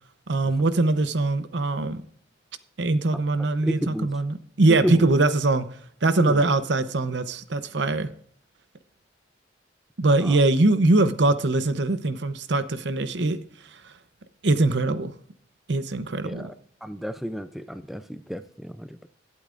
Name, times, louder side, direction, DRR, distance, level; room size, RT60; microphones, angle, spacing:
voice 1, 0.3-2.0 2.8-5.7 6.0-8.1 10.0-13.4 14.4-15.1 15.7-16.5, right 2 dB, 70° right, 0.8 m, -22 dB
voice 2, 3.4-4.1 4.8-5.1 6.2-6.4 10.2-10.4 16.2-16.5 16.8-19.1, equal, ahead, 0.4 m, -31 dB
20.0 x 8.5 x 2.5 m
head